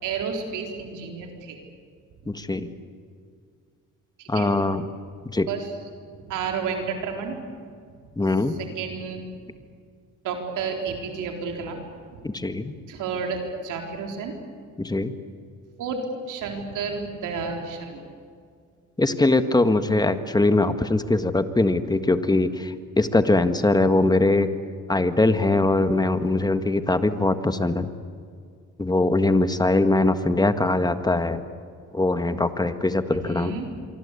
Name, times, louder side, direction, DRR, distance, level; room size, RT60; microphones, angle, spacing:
voice 1, 0.0-1.6 4.2-4.5 5.5-5.7 6.1-7.5 7.8-7.9 8.3-9.2 10.2-11.8 12.9-14.3 15.8-16.0 16.3-18.0 33.1-33.8, right 5 dB, 90° right, 3 dB, 4.2 m, -31 dB
voice 2, 2.3-2.7 4.3-4.8 5.3-5.5 8.2-8.5 12.2-12.7 14.8-15.1 19.0-24.5 24.9-27.9 28.8-31.4 31.9-33.5, left 2 dB, 15° left, 10 dB, 1.6 m, -22 dB
25.5 x 24.0 x 8.4 m, 2.2 s
cardioid pair, 90°, 30 cm